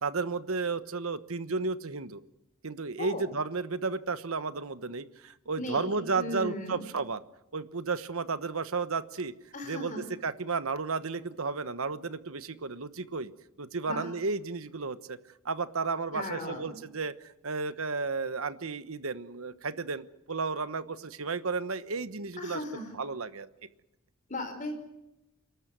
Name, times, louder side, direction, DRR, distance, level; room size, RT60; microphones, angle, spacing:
voice 1, 0.0-2.2 2.6-7.2 7.5-9.3 9.6-13.3 13.6-15.2 15.4-22.6 22.9-23.5, right 4 dB, 70° right, 13 dB, 1.2 m, -33 dB
voice 2, 3.0-3.3 5.6-6.8 9.5-10.0 13.8-14.1 16.1-16.8 22.4-22.9 24.3-24.7, left 1 dB, 35° left, 6 dB, 4.9 m, -37 dB
29.0 x 13.0 x 9.5 m, 0.91 s
head